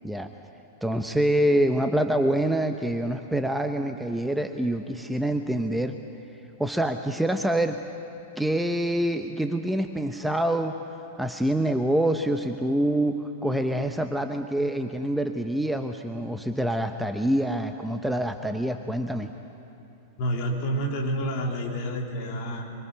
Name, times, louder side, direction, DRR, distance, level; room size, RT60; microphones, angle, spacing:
voice 1, 0.8-6.0 6.6-7.8 8.4-10.8 11.2-19.3, right 1 dB, 5° right, 6 dB, 0.8 m, -26 dB
voice 2, 20.2-22.7, equal, 45° left, 0 dB, 3.6 m, -29 dB
24.5 x 23.5 x 5.6 m, 2.9 s
figure-of-eight pair, 100°, 0 cm